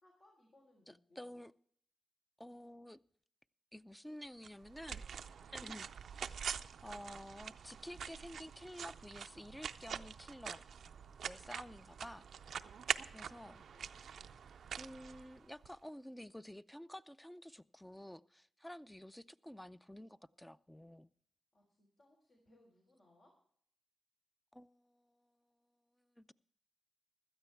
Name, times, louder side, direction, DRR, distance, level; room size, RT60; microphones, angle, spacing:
voice 1, 0.0-1.2 5.4-5.8 12.8-14.4 21.5-23.3, left 1 dB, 65° left, -2 dB, 3.8 m, -69 dB
voice 2, 0.9-1.5 2.4-3.0 3.7-5.1 5.5-6.3 6.8-10.6 11.2-12.3 13.1-13.6 14.8-21.1 24.5-25.3 26.2-26.3, equal, 10° left, 15 dB, 0.5 m, -51 dB
sound 1, 4.4-15.7, right 7 dB, 75° right, 0.5 m, -45 dB
16.0 x 12.5 x 3.4 m, 0.63 s
cardioid pair, 50°, 0 cm